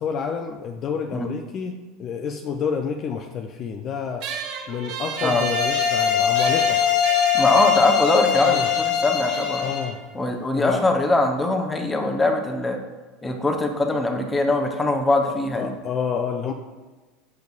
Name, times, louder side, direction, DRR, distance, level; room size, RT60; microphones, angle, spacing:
voice 1, 0.0-4.3 4.7-6.8 8.4-8.7 9.6-10.0 10.5-11.0 15.3-16.5, left 6 dB, 45° left, 4 dB, 0.4 m, -29 dB
sound 1, 4.2-11.0, right 7 dB, 60° right, 0.7 m, -34 dB
sound 2, 5.1-9.9, left 8 dB, 65° left, 0.9 m, -22 dB
voice 2, 7.3-9.6 10.1-12.8 13.2-15.7, left 2 dB, 15° left, 4 dB, 0.9 m, -22 dB
7.8 x 5.3 x 2.4 m, 1.3 s
hypercardioid pair, 85°, 0 cm